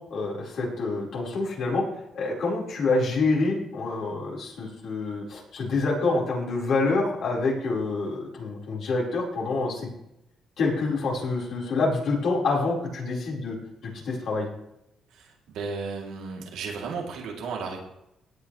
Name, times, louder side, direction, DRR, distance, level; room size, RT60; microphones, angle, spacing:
voice 1, 0.1-1.9 2.1-9.9 10.6-13.6 13.8-14.5, left 3 dB, 70° left, -3 dB, 4.7 m, -27 dB
voice 2, 15.1-17.8, right 4 dB, 90° right, -1 dB, 3.1 m, -34 dB
17.0 x 8.9 x 3.3 m, 0.83 s
cardioid pair, 90°, 0 cm